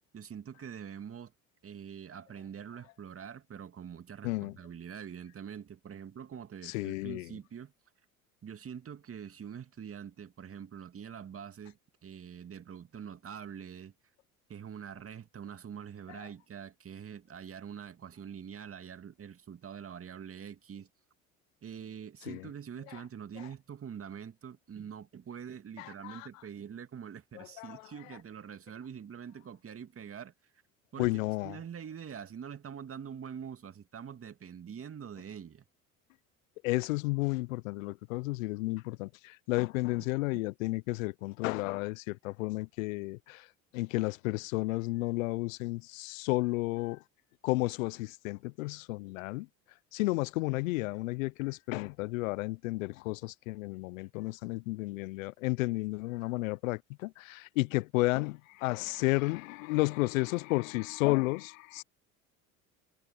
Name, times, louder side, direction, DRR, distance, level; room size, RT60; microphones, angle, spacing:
voice 1, 0.1-1.3 1.6-7.7 8.4-11.8 12.0-13.9 14.5-20.9 21.6-30.3 30.9-31.1 31.4-35.6 40.0-40.4, right 8 dB, 35° right, 2.2 m, -45 dB
voice 2, 6.6-7.3 22.3-22.4 25.8-26.3 27.4-27.8 31.0-31.6 36.6-43.5 43.7-47.0 47.4-49.5 49.9-61.8, left 22 dB, 70° left, 0.9 m, -32 dB
hypercardioid pair, 65°, 41 cm